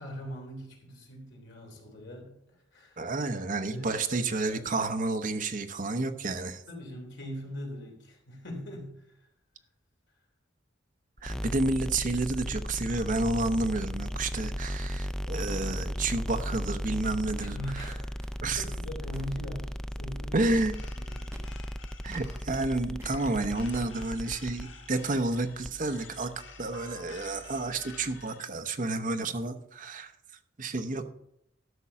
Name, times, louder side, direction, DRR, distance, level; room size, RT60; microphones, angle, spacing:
voice 1, 0.0-2.4 2.7-3.9 4.5-4.7 6.7-9.2 17.4-18.3 18.6-20.5 20.9-21.3, equal, 65° left, 1 dB, 3.3 m, -41 dB
voice 2, 3.0-6.6 11.2-17.6 18.4-18.6 20.3-20.7 22.0-26.3 26.6-30.1 30.6-31.1, right 2 dB, 45° right, 8 dB, 0.9 m, -30 dB
sound 1, 11.2-28.2, equal, 5° left, 0.3 m, -37 dB
sound 2, 15.5-15.8 16.4-16.8 17.4-17.7 18.2-18.5 19.1-19.4 20.5-20.7 21.3-21.6 22.1-22.4 23.0-23.2 23.7-24.0, right 1 dB, 15° right, 1.4 m, -53 dB
sound 3, 20.4-28.5, left 6 dB, 85° left, 1.2 m, -51 dB
12.5 x 6.1 x 5.6 m, 0.77 s
head